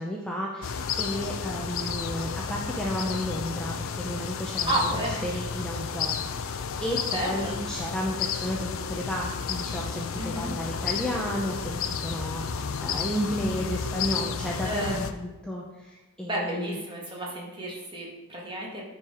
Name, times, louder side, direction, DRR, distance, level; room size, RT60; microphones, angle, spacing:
voice 1, 0.0-4.9 5.2-16.8, equal, 5° left, -3 dB, 0.8 m, -33 dB
sound 1, 0.6-15.1, left 6 dB, 65° left, 0.5 m, -32 dB
voice 2, 4.7-5.2 7.1-7.5 10.1-10.5 14.6-15.0 16.2-18.8, right 1 dB, 25° right, -3 dB, 1.8 m, -31 dB
9.3 x 4.7 x 5.0 m, 1.1 s
head